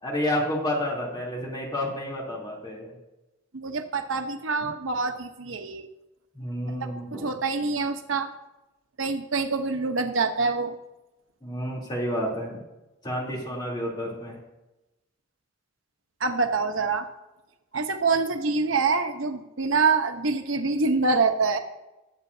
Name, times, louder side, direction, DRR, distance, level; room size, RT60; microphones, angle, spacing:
voice 1, 0.0-2.9 4.6-4.7 6.3-7.3 11.4-12.6 13.0-14.4, equal, 25° left, -4 dB, 3.3 m, -30 dB
voice 2, 3.5-5.9 6.7-8.3 9.0-10.7 16.2-17.1 17.7-21.6, right 4 dB, 90° right, 6 dB, 1.0 m, -26 dB
20.5 x 8.3 x 2.8 m, 0.99 s
head